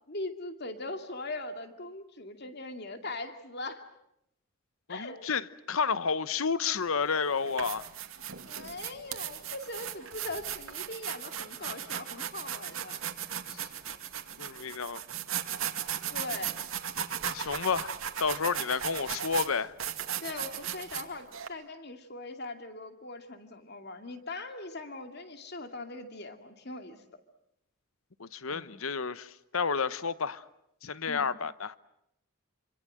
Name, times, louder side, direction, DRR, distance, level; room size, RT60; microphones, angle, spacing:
voice 1, 0.1-3.9 4.9-5.4 8.4-13.0 16.1-16.7 20.2-27.2 28.5-28.6 31.1-31.3, left 2 dB, 50° left, 2.5 m, -41 dB
voice 2, 4.9-7.9 13.5-13.7 14.4-15.0 17.2-19.7 28.2-30.4 30.8-31.8, left 5 dB, 75° left, 1.0 m, -31 dB
sound 1, 6.7-6.8 7.4-21.5, right 9 dB, 75° right, 2.3 m, -37 dB
27.0 x 26.0 x 7.7 m
head